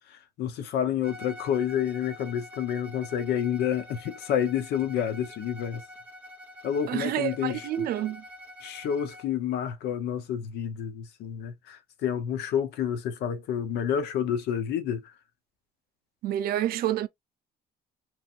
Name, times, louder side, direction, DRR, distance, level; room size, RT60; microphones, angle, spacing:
voice 1, 0.0-5.8 6.6-7.9 8.6-15.1, left 9 dB, 75° left, 0.8 m, -29 dB
Bowed string instrument, 1.0-9.3, left 1 dB, 10° right, 1.1 m, -46 dB
voice 2, 6.9-8.2 16.2-17.1, right 12 dB, 65° right, 0.5 m, -28 dB
3.1 x 2.6 x 2.4 m
cardioid pair, 110°, 17 cm